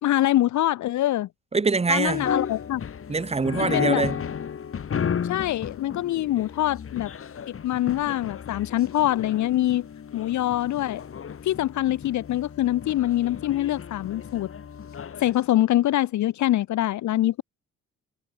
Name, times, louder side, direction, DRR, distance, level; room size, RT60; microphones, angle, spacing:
voice 1, 0.0-1.3 1.9-2.8 3.6-4.0 5.3-7.1 7.5-9.9 10.1-11.0 11.4-14.5 15.2-17.4, left 14 dB, 70° left, 0.9 m, -24 dB
voice 2, 1.5-2.3 3.1-4.2, right 4 dB, 20° right, 1.4 m, -24 dB
sound 1, 2.1-15.4, left 7 dB, 45° left, 2.8 m, -33 dB
cardioid pair, 90°, 30 cm